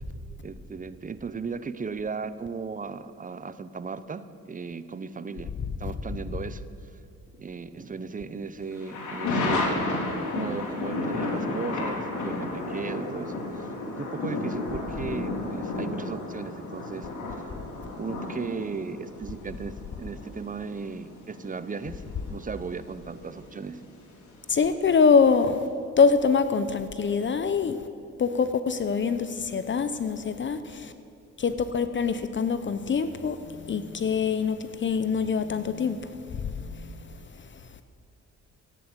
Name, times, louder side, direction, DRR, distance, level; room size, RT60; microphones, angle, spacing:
voice 1, 0.4-5.5 5.8-6.6 7.3-9.9 10.3-17.4 18.0-23.8, right 5 dB, 25° right, 14 dB, 0.7 m, -36 dB
sound 1, 8.7-24.3 24.6-24.7, left 2 dB, 75° left, 3.7 m, -33 dB
voice 2, 24.5-25.6 26.0-27.8 28.2-30.9 31.4-36.9, left 5 dB, 40° left, 11 dB, 0.8 m, -24 dB
14.0 x 9.5 x 7.9 m, 2.7 s
cardioid pair, 90°, 30 cm